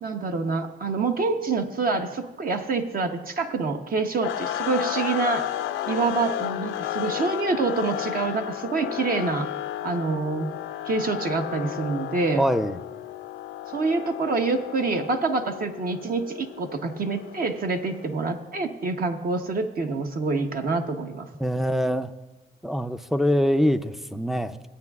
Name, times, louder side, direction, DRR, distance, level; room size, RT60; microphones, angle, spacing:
voice 1, 0.0-5.4 5.9-9.5 9.8-10.5 10.8-12.4 13.7-21.3, right 3 dB, 45° right, 5 dB, 0.9 m, -26 dB
sound 1, 4.2-18.3, left 12 dB, 85° left, 0.5 m, -33 dB
voice 2, 12.4-12.8 21.4-22.1 22.6-24.6, equal, ahead, 8 dB, 0.4 m, -24 dB
17.0 x 8.8 x 2.4 m, 1.2 s
cardioid pair, 90°, 20 cm